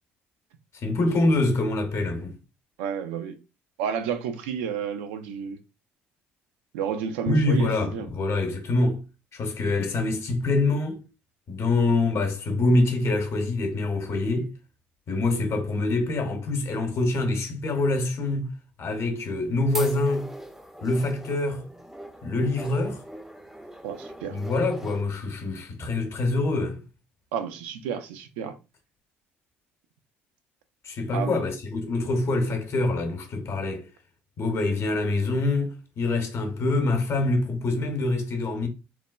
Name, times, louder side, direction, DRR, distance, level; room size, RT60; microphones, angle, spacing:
voice 1, 0.8-2.3 7.3-9.0 9.3-11.0 11.5-14.5 15.1-18.5 18.8-20.3 20.8-21.6 22.2-23.0 24.3-26.8 30.8-33.9 34.4-38.7, left 2 dB, 50° left, 0.7 m, -25 dB
voice 2, 2.8-3.3 3.8-5.6 6.7-8.1 23.8-24.4 27.3-28.5 31.1-31.4, right 7 dB, 80° right, 0.4 m, -31 dB
sound 1, 19.2-25.0, right 1 dB, 5° right, 0.4 m, -41 dB
3.1 x 2.1 x 2.2 m
hypercardioid pair, 60°, 6 cm